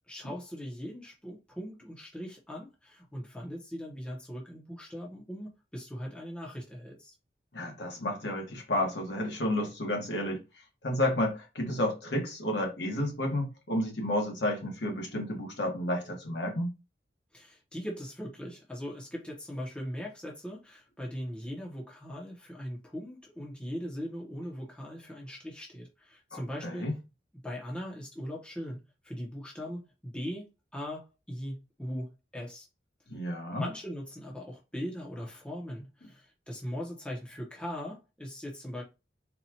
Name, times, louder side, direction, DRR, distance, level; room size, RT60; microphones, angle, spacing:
voice 1, 0.1-7.1 17.3-26.8 27.4-30.5 30.7-32.7 33.5-38.8, equal, 5° left, 0.8 m, -40 dB
voice 2, 7.5-10.4 10.8-16.7 26.3-27.0 33.1-33.7, left 1 dB, 65° left, 1.3 m, -31 dB
4.1 x 2.4 x 2.8 m
head